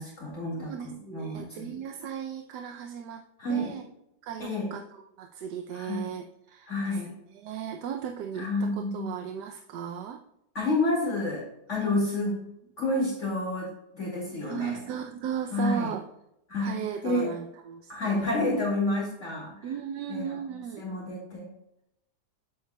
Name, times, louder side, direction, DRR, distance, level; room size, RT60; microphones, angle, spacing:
voice 1, 0.0-1.8 3.4-3.7 4.4-4.7 5.7-6.0 6.7-7.1 8.3-9.2 10.5-11.4 11.7-12.4 12.8-13.7 13.9-14.8 15.5-15.9 16.5-17.3 17.9-19.7 20.1-20.3 20.8-21.5, left 2 dB, 45° left, -4 dB, 2.5 m, -29 dB
voice 2, 0.5-3.2 3.5-3.8 4.2-7.0 7.3-10.2 11.7-12.0 14.5-16.0 16.6-18.3 19.6-20.8, right 8 dB, 80° right, 5 dB, 1.3 m, -36 dB
9.5 x 8.0 x 2.3 m, 0.84 s
omnidirectional pair, 1.8 m